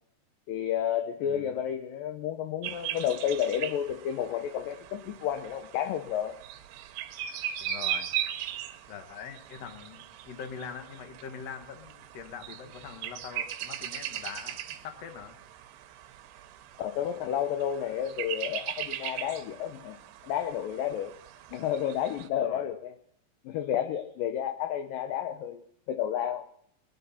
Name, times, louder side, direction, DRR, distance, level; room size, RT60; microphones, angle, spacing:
voice 1, 0.5-6.4 16.8-20.0 20.2-21.1 21.5-22.9 23.5-25.6 25.9-26.5, left 10 dB, 75° left, 6 dB, 2.1 m, -31 dB
voice 2, 1.2-1.6 7.6-8.1 8.9-15.3 22.3-22.7, left 7 dB, 60° left, 6 dB, 1.9 m, -43 dB
sound 1, 2.6-22.3, right 11 dB, 80° right, 2.9 m, -39 dB
22.5 x 10.5 x 4.2 m, 0.68 s
omnidirectional pair, 4.8 m